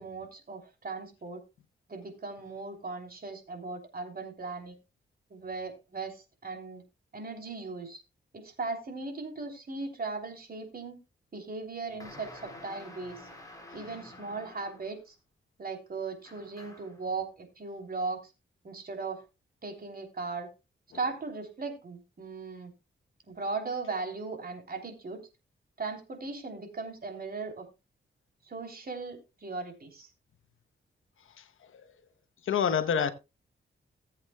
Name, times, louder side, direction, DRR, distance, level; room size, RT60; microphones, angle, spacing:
voice 1, 0.0-1.4 1.9-4.8 5.3-6.8 7.1-8.0 8.3-11.0 11.3-13.3 13.7-15.2 15.6-18.3 18.6-19.2 19.6-20.5 20.9-22.7 23.3-25.3 25.8-27.7 28.4-30.1, right 4 dB, 50° right, 3.3 m, -38 dB
sound 1, 12.0-15.0 16.2-17.0, left 1 dB, 15° left, 4.7 m, -49 dB
voice 2, 32.4-33.1, left 7 dB, 80° left, 1.0 m, -27 dB
18.5 x 8.1 x 2.3 m
cardioid pair, 80°, 20 cm